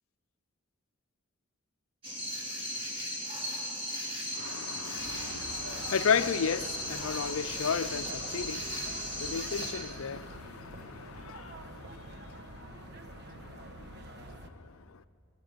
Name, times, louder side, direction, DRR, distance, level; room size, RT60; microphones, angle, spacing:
sound 1, 2.0-9.7, equal, 25° right, 3.9 m, -37 dB
voice 1, 4.3-11.9, left 6 dB, 75° left, 0.5 m, -33 dB
sound 2, 5.0-14.5, right 2 dB, 50° right, 1.2 m, -46 dB
26.0 x 22.0 x 5.1 m
head